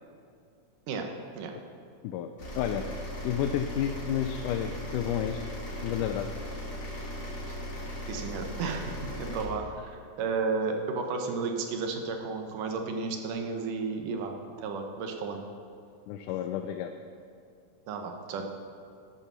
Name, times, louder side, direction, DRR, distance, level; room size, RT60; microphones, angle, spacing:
sound 1, 2.4-9.4, equal, 45° left, 2.7 m, -38 dB
voice 1, 2.6-2.9 3.2-5.4 5.8-6.3 16.1-16.9, left 10 dB, 90° left, 6 dB, 2.1 m, -30 dB
voice 2, 8.1-14.3 14.6-15.4 17.9-18.5, right 4 dB, 85° right, 4 dB, 2.6 m, -33 dB
11.5 x 8.2 x 5.9 m, 2.5 s
omnidirectional pair, 3.6 m